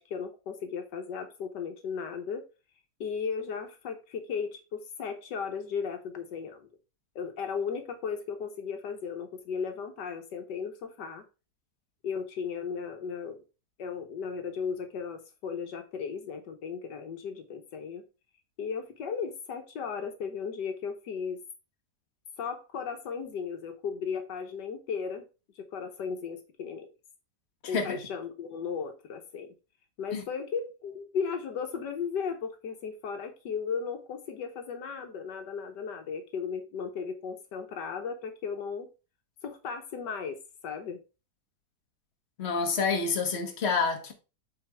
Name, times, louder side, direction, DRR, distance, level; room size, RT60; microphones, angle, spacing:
voice 1, 0.0-2.4 3.0-6.7 7.1-11.2 12.0-13.4 13.8-18.0 18.6-21.4 22.4-25.2 25.5-26.9 27.7-29.5 30.0-38.9 39.4-40.4 40.6-41.0, left 6 dB, 75° left, 1.6 m, -36 dB
voice 2, 27.6-28.0 30.1-30.2 42.4-44.1, left 5 dB, 40° left, 1.5 m, -28 dB
8.4 x 4.1 x 3.4 m
omnidirectional pair, 1.9 m